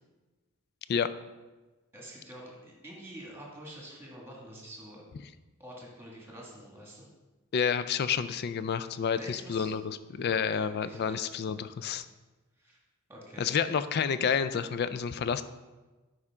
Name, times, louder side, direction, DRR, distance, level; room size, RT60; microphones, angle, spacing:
voice 1, 1.9-5.0 5.6-7.1 9.2-9.8 10.2-11.3 12.6-12.8 13.1-13.5, right 1 dB, 10° right, -2 dB, 1.9 m, -47 dB
voice 2, 7.5-12.1 13.4-15.4, left 7 dB, 50° left, 13 dB, 0.4 m, -29 dB
9.7 x 5.0 x 3.6 m, 1.2 s
head